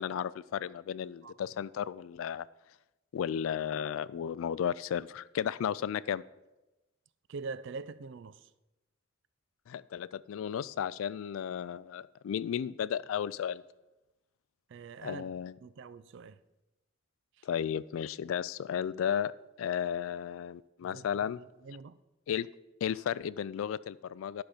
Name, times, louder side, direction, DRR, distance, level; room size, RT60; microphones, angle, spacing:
voice 1, 0.0-2.5 3.1-6.2 9.7-13.6 15.0-15.5 17.4-19.3 19.6-21.4 22.3-22.5 22.8-24.4, left 8 dB, 75° left, 0.3 m, -34 dB
voice 2, 7.3-8.5 14.7-15.3 15.6-16.4 17.4-17.5 20.8-22.0, right 4 dB, 60° right, 0.4 m, -44 dB
10.5 x 5.9 x 4.9 m
head